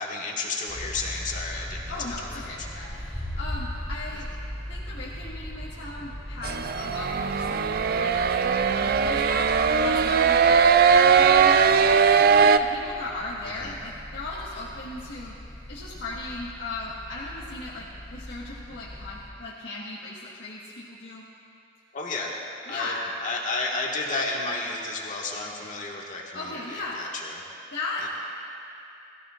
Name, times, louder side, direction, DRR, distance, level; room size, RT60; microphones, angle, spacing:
voice 1, 0.0-1.9 2.2-2.5 13.6-13.7 21.9-22.3 22.7-23.0 23.2-27.4 28.0-28.1, left 3 dB, 45° left, -2 dB, 1.7 m, -32 dB
sound 1, 0.7-19.3, left 1 dB, ahead, 2.8 m, -39 dB
voice 2, 1.9-4.3 4.7-7.6 8.0-9.5 9.8-10.6 10.9-15.3 15.7-21.2 22.7-23.0 26.3-27.1 27.7-28.1, left 2 dB, 70° left, -7 dB, 1.5 m, -37 dB
sound 2, 6.4-12.6, right 6 dB, 55° right, 0.4 m, -20 dB
21.5 x 15.0 x 2.5 m, 2.8 s
head